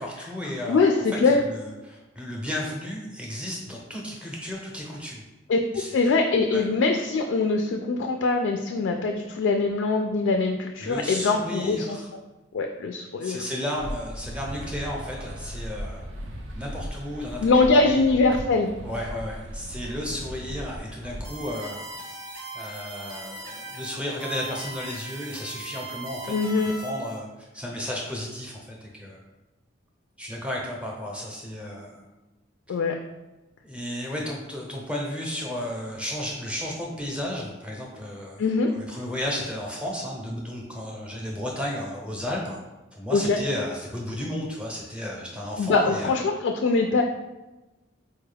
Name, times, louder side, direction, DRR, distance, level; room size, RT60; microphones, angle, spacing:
voice 1, 0.0-5.2 5.7-6.0 6.5-6.6 10.8-12.1 13.2-16.0 16.5-18.0 18.8-21.8 22.5-26.3 26.7-27.3 27.5-29.2 30.2-32.0 33.6-42.6 42.9-46.2, left 1 dB, 5° right, -2 dB, 0.6 m, -33 dB
voice 2, 0.7-1.4 5.5-5.6 5.9-12.0 12.5-13.4 17.4-18.7 26.3-26.7 32.7-33.0 38.4-38.7 43.1-43.4 45.6-47.0, left 3 dB, 75° left, 3 dB, 0.3 m, -22 dB
sound 1, 13.8-21.3, equal, 85° right, 0.5 m, -37 dB
sound 2, 21.2-27.2, right 2 dB, 70° right, 0.9 m, -39 dB
4.4 x 2.3 x 3.3 m, 1.1 s
head